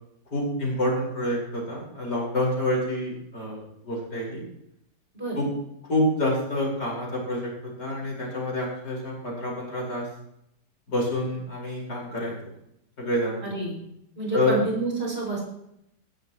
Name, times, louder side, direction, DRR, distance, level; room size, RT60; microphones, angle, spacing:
voice 1, 0.3-4.4 5.3-5.5 5.9-10.1 10.9-12.3 13.0-13.4 14.3-14.6, left 1 dB, 75° left, -3 dB, 5.5 m, -27 dB
voice 2, 13.4-13.7 14.2-15.4, right 3 dB, 35° right, -2 dB, 6.2 m, -28 dB
17.5 x 13.0 x 3.1 m, 0.77 s
omnidirectional pair, 1.8 m